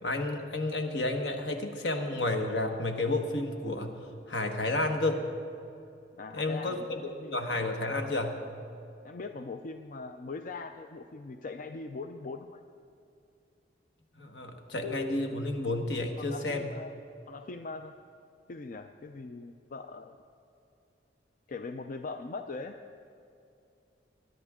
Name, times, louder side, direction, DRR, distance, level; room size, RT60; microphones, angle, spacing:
voice 1, 0.0-3.9 4.3-5.2 6.3-8.4 14.2-16.7, left 2 dB, 70° left, 4 dB, 1.3 m, -31 dB
voice 2, 6.2-6.9 7.2-7.4 9.0-12.6 16.2-16.9 17.3-17.9 18.5-20.2 21.5-22.8, left 3 dB, 50° left, 7 dB, 0.5 m, -41 dB
21.0 x 11.0 x 3.7 m, 2.6 s
head